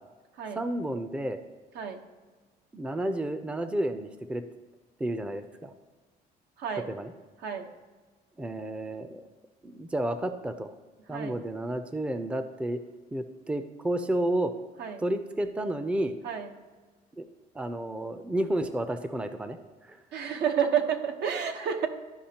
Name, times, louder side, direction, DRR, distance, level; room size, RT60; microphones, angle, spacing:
voice 1, 0.5-1.4 2.7-4.4 5.0-5.7 6.9-7.1 8.4-9.2 9.6-10.7 11.1-12.8 13.1-14.5 15.0-16.2 17.2-17.3 17.5-19.6 19.8-20.0, right 1 dB, 5° right, 9 dB, 0.4 m, -31 dB
voice 2, 20.1-21.9, right 8 dB, 75° right, 5 dB, 0.9 m, -30 dB
13.0 x 5.0 x 2.8 m, 1.3 s
cardioid pair, 110°, 17 cm